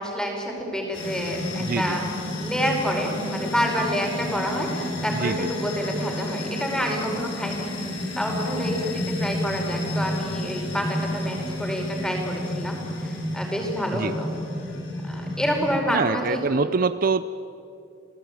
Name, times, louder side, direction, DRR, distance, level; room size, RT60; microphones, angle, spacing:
voice 1, 0.0-2.0 2.4-8.9 9.2-10.8 11.1-14.3 15.0-16.7, equal, 5° left, 0 dB, 5.0 m, -28 dB
sound 1, 0.9-15.7, left 1 dB, 80° left, 6.4 m, -31 dB
voice 2, 1.6-2.0 5.1-5.5 13.9-14.1 15.9-17.3, right 4 dB, 45° right, 13 dB, 0.5 m, -25 dB
29.0 x 18.5 x 9.1 m, 2.6 s
head